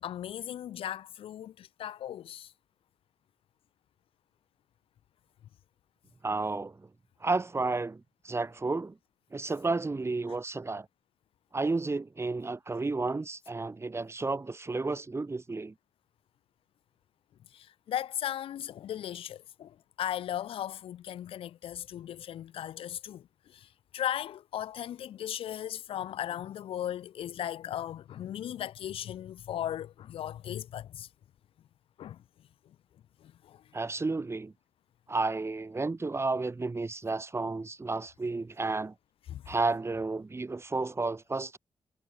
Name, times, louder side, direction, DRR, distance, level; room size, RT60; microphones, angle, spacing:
voice 1, 0.0-2.5 17.5-31.1 32.0-32.2 33.2-33.6 39.3-39.5, left 11 dB, 80° left, 0.6 m, -37 dB
voice 2, 6.2-6.9 7.2-9.0 9.3-10.9 11.5-15.7 33.7-34.5 35.1-38.9 39.5-41.6, right 3 dB, 30° right, 1.0 m, -32 dB
cardioid pair, 60°, 9 cm